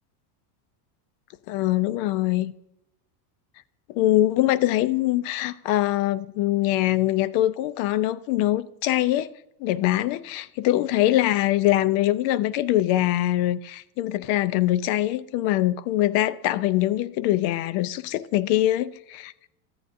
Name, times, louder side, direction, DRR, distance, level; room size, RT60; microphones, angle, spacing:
voice 1, 1.5-2.5 3.9-9.3 9.6-19.3, left 14 dB, 60° left, 0.6 m, -23 dB
14.0 x 9.4 x 2.6 m
supercardioid pair, 125°, 49 cm